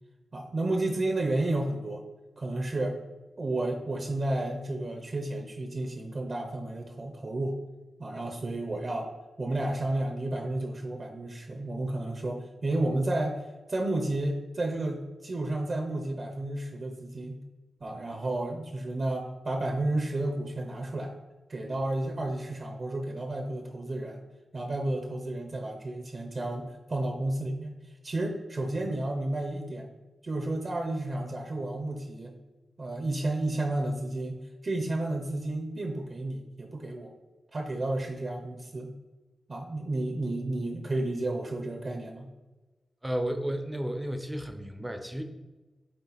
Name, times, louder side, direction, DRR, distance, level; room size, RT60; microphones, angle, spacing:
voice 1, 0.3-2.0 2.4-3.0 3.4-7.6 8.0-9.1 9.4-17.4 17.8-21.1 21.5-24.2 24.5-29.9 30.2-32.4 32.8-37.1 37.5-38.9 39.5-42.3, right 2 dB, 45° right, 4 dB, 0.8 m, -32 dB
voice 2, 43.0-45.2, right 1 dB, 10° right, 7 dB, 0.7 m, -32 dB
8.9 x 3.3 x 4.1 m, 1.2 s
wide cardioid pair, 100°, 0 cm